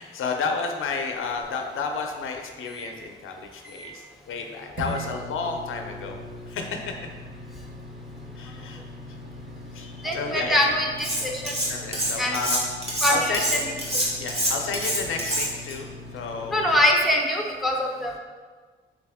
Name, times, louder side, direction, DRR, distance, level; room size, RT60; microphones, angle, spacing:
voice 1, 0.0-6.2 6.5-6.8 8.4-8.8 9.7-9.9 10.1-10.6 11.7-12.6 13.1-13.6 14.2-16.8, left 4 dB, 90° left, 4 dB, 0.5 m, -31 dB
sound 1, 1.1-2.9 3.3-3.4 3.6-4.1 4.8-16.8, left 1 dB, 60° right, 1.1 m, -41 dB
voice 2, 10.0-11.6 12.2-12.4 13.0-13.7 16.5-18.1, left 1 dB, ahead, 0 dB, 0.6 m, -23 dB
Cutlery silverware, 11.0-11.7 11.9-15.7, right 1 dB, 30° right, 1.2 m, -26 dB
3.9 x 3.3 x 3.5 m, 1.4 s
cardioid pair, 110°, 21 cm